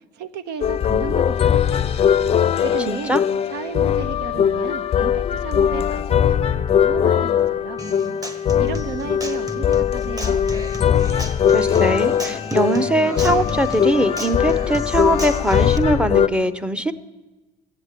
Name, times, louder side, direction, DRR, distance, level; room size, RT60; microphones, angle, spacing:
voice 1, 0.0-2.1 2.6-3.2 3.5-7.8 8.3-10.5, right 6 dB, 85° right, 13 dB, 0.8 m, -34 dB
sound 1, 0.6-16.3, left 8 dB, 35° left, 0.4 m, -20 dB
voice 2, 2.9-3.2 11.5-16.9, right 1 dB, 5° right, 12 dB, 0.6 m, -21 dB
Human voice / Acoustic guitar, 7.8-15.8, equal, 20° right, 1.4 m, -33 dB
16.0 x 8.0 x 8.2 m, 1.1 s
cardioid pair, 110°, 17 cm